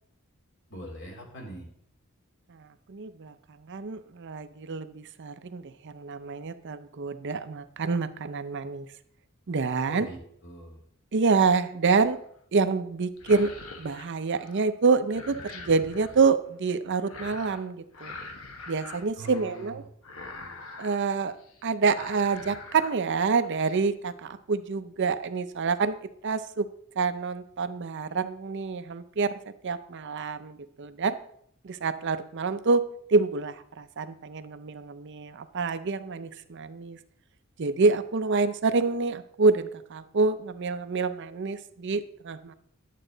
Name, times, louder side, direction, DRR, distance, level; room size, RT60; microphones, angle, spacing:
voice 1, 0.7-1.7 9.8-10.8 19.2-19.8 20.1-20.5, right 1 dB, 60° left, 1 dB, 2.6 m, -43 dB
voice 2, 2.5-8.9 9.5-10.1 11.1-12.2 12.5-13.5 13.8-18.1 18.7-19.8 20.8-21.4 21.6-26.0 26.2-26.7 27.0-29.3 29.6-31.1 31.6-32.8 33.1-37.0 37.6-42.5, right 4 dB, 55° right, 11 dB, 0.6 m, -27 dB
sound 1, 11.8-12.3 13.1-14.7 14.9-16.2 17.1-17.7 17.9-19.7 20.0-21.0 21.4-21.6 21.9-23.0 23.3-23.7, left 3 dB, 75° left, 1.1 m, -44 dB
11.0 x 7.5 x 3.9 m, 0.68 s
head